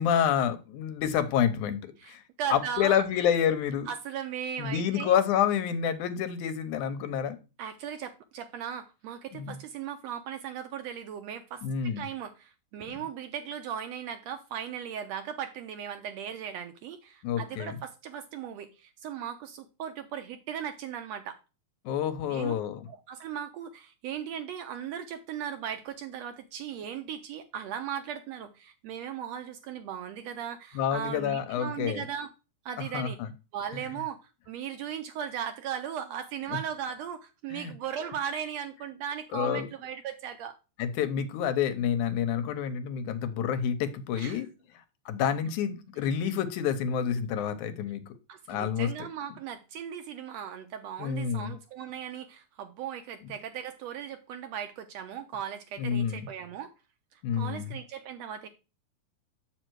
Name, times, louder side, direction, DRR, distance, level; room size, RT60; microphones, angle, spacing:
voice 1, 0.0-2.2 2.5-3.9 4.6-7.4 9.3-9.6 11.6-12.0 12.9-13.0 17.2-17.8 21.9-22.9 30.8-32.1 32.9-33.3 36.5-36.6 37.5-37.7 39.3-39.7 40.8-44.5 45.1-48.0 48.5-48.9 51.0-51.5 55.8-56.3 57.2-57.6, left 8 dB, 80° left, 2.2 m, -28 dB
voice 2, 2.0-3.0 3.9-5.2 7.6-21.4 22.3-22.5 22.9-32.3 32.6-33.2 33.5-40.5 44.2-44.4 48.3-56.7 57.1-58.5, right 8 dB, 75° right, 1.6 m, -37 dB
7.6 x 4.9 x 4.5 m
omnidirectional pair, 3.5 m